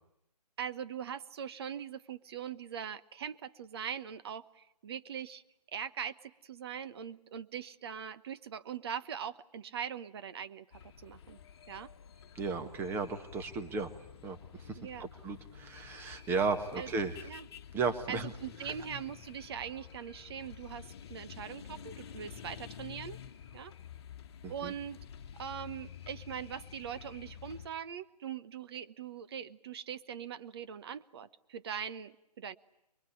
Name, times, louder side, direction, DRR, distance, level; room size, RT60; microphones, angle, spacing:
voice 1, 0.6-5.4 5.7-11.4 11.7-11.9 14.7-15.1 16.8-16.9 17.2-17.5 18.1-23.2 23.5-23.7 24.5-25.0 25.4-32.1 32.4-32.6, right 8 dB, 40° right, 13 dB, 1.1 m, -41 dB
sound 1, 10.7-27.7, left 8 dB, 40° left, 1.6 m, -50 dB
voice 2, 12.3-13.9 14.2-17.3 17.7-18.3 18.6-18.7 24.4-24.7, right 4 dB, 10° right, 9 dB, 1.6 m, -35 dB
25.0 x 23.0 x 10.0 m, 0.82 s
hypercardioid pair, 150°, 21 cm